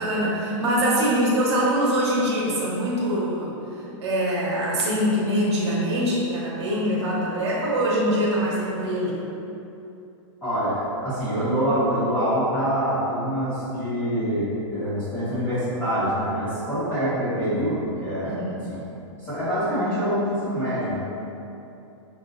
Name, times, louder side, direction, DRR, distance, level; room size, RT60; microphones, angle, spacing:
voice 1, 0.0-3.5 4.0-9.2 18.2-18.6, equal, 60° right, -5 dB, 0.9 m, -23 dB
voice 2, 10.4-18.4 18.7-18.8 19.2-21.0, equal, 10° left, -14 dB, 1.1 m, -25 dB
5.9 x 2.3 x 2.5 m, 2.8 s
supercardioid pair, 180°, 16 cm